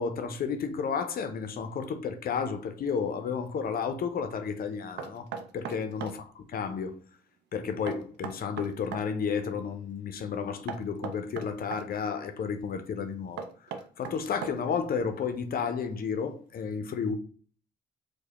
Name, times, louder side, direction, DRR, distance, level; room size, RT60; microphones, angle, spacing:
voice 1, 0.0-5.3 5.5-7.0 7.5-13.5 14.0-17.2, left 6 dB, 50° left, 0.5 m, -32 dB
Knock, 5.0-6.2 7.9-9.1 10.7-11.9 13.4-14.8, right 7 dB, 60° right, 0.5 m, -38 dB
4.6 x 2.1 x 3.0 m
hypercardioid pair, 45°, 20 cm